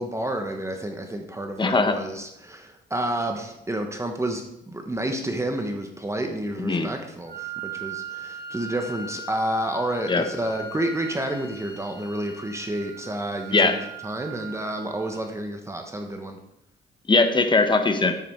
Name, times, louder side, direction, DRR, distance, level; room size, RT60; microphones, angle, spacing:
voice 1, 0.0-13.7 14.0-16.4, right 1 dB, 15° right, 4 dB, 1.2 m, -30 dB
voice 2, 1.6-2.0 6.6-6.9 10.1-10.3 13.5-13.9 17.1-18.2, left 3 dB, 25° left, 7 dB, 1.3 m, -20 dB
Wind instrument woodwind instrument, 7.3-15.2, right 3 dB, 60° right, 1.4 m, -39 dB
9.3 x 8.2 x 4.7 m, 0.85 s
cardioid pair, 90°, 20 cm